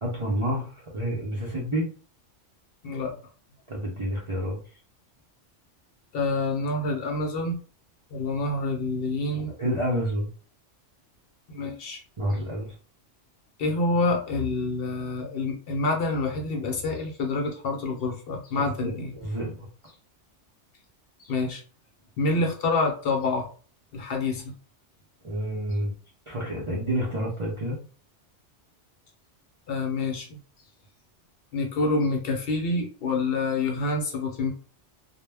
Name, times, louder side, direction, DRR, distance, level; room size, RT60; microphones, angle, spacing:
voice 1, 0.0-1.9 3.7-4.6 9.6-10.3 12.2-12.8 18.5-19.7 25.2-25.9 26.3-27.8, equal, 45° right, -4 dB, 0.4 m, -29 dB
voice 2, 2.8-3.2 6.1-7.5 8.1-9.5 11.5-12.0 13.6-19.1 21.2-21.6 22.2-23.5 23.9-24.4 29.7-30.4 31.5-34.5, left 3 dB, 60° left, 2 dB, 0.7 m, -27 dB
2.1 x 2.1 x 3.2 m, 0.38 s
omnidirectional pair, 1.2 m